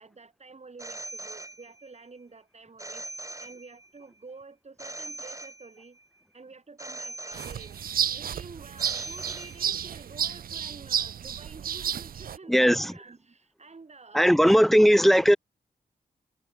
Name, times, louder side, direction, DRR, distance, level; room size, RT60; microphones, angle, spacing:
voice 1, 0.0-3.1 3.4-6.0 6.3-7.8 8.1-14.9, right 4 dB, 45° right, 6.1 m, -49 dB
Telephone, 0.8-2.0 2.8-4.0 4.8-6.0 6.8-8.0 8.8-10.0, right 2 dB, 20° right, 4.4 m, -41 dB
sound 1, 7.3-12.4, right 8 dB, 65° right, 0.7 m, -31 dB
voice 2, 12.5-12.9 14.1-15.4, equal, ahead, 0.5 m, -18 dB
supercardioid pair, 40°, 16 cm